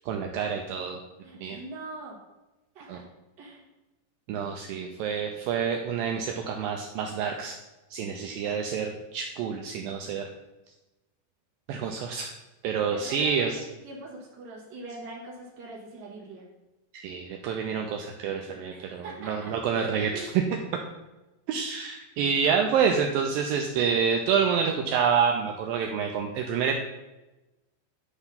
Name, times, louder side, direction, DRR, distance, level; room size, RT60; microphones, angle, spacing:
voice 1, 0.1-1.0 1.4-1.6 2.9-3.0 4.3-7.6 7.9-10.3 11.7-12.3 12.6-13.6 16.9-20.3 21.5-26.8, right 6 dB, 85° right, 2 dB, 2.1 m, -28 dB
voice 2, 1.2-2.2 2.7-3.0 3.4-3.6 12.9-13.5 13.8-16.5 18.7-19.5 20.1-20.3, right 2 dB, 35° right, -4 dB, 1.8 m, -42 dB
9.9 x 3.5 x 5.7 m, 1.0 s
omnidirectional pair, 4.6 m